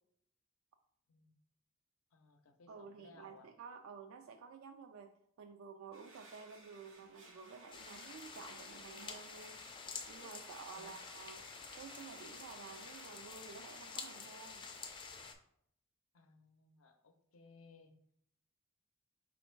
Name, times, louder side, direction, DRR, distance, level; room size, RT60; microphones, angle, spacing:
voice 1, 2.1-3.5 10.7-11.0 16.1-17.9, left 4 dB, 90° left, 6 dB, 0.6 m, -61 dB
voice 2, 2.7-5.1 5.4-9.6 10.1-11.4 11.8-14.7, right 5 dB, 85° right, 6 dB, 0.3 m, -52 dB
sound 1, 5.9-14.2, right 2 dB, 65° right, 0.9 m, -60 dB
sound 2, 7.7-15.3, left 5 dB, 25° left, 0.4 m, -49 dB
4.3 x 2.5 x 4.4 m, 0.71 s
head